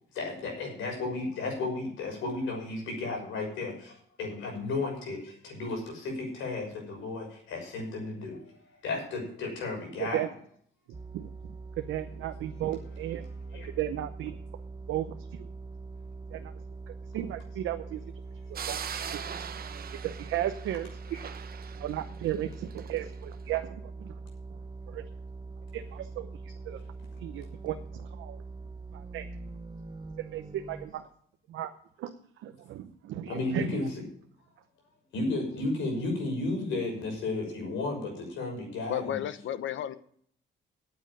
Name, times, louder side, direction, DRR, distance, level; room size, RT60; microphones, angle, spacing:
voice 1, 0.1-10.2 13.5-13.7 18.7-18.8 21.1-21.2 33.3-34.0 35.1-39.2, left 2 dB, 90° left, 1 dB, 6.3 m, -33 dB
sound 1, 10.9-30.9, right 3 dB, 20° right, 0.9 m, -43 dB
voice 2, 10.9-11.3 11.8-13.3 13.8-14.4 14.9-15.1 15.3-15.5 16.3-16.5 16.9-18.0 18.5-19.1 20.0-20.9 21.7-24.1 24.9-25.0 25.7-26.3 26.6-26.8 27.2-28.4 28.9-29.3 30.2-31.0 31.5-31.7 32.4-33.7, right 12 dB, 85° right, 7 dB, 0.8 m, -35 dB
sound 2, 18.6-23.0, right 8 dB, 50° right, 0.9 m, -41 dB
voice 3, 38.9-40.0, left 11 dB, 70° left, 13 dB, 1.0 m, -32 dB
9.3 x 9.0 x 8.7 m, 0.63 s
cardioid pair, 90°, 20 cm